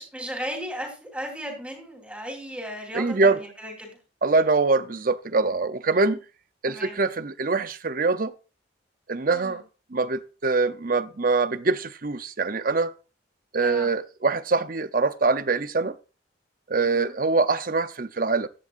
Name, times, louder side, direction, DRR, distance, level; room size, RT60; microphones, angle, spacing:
voice 1, 0.0-4.0 6.7-7.0 9.3-9.6 13.6-13.9 16.8-17.1, equal, 5° right, 3.7 m, -36 dB
voice 2, 2.9-3.4 4.2-6.2 6.6-8.3 9.1-9.6 9.9-12.9 13.5-15.9 16.7-18.5, right 3 dB, 50° right, 0.7 m, -24 dB
15.5 x 11.0 x 2.6 m
head